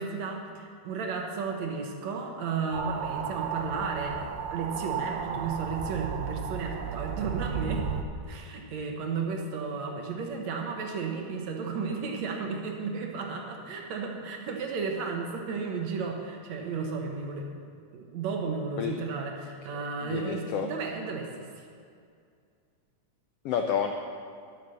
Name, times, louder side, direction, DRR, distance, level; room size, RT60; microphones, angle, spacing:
voice 1, 0.0-7.8 8.3-17.6 17.9-21.4, right 4 dB, 65° right, 2 dB, 2.3 m, -33 dB
sound 1, 2.7-8.0, right 7 dB, 90° right, 2.3 m, -33 dB
voice 2, 19.7-20.7 23.4-23.9, left 7 dB, 80° left, 4 dB, 1.4 m, -30 dB
11.0 x 9.4 x 6.8 m, 2.3 s
omnidirectional pair, 3.5 m